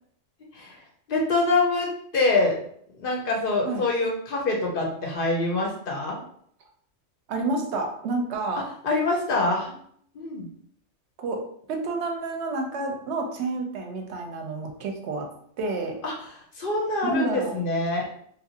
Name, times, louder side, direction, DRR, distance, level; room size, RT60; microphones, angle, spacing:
voice 1, 1.1-1.9 2.1-2.6 3.0-6.2 8.8-9.8 10.1-10.5 16.0-16.1 16.6-18.0, left 2 dB, 55° left, -1 dB, 0.6 m, -25 dB
voice 2, 7.3-8.6 11.2-11.4 11.7-15.3 15.6-16.0 17.1-17.6, right 3 dB, 65° right, 3 dB, 0.8 m, -29 dB
2.9 x 2.4 x 2.7 m, 0.65 s
omnidirectional pair, 1.4 m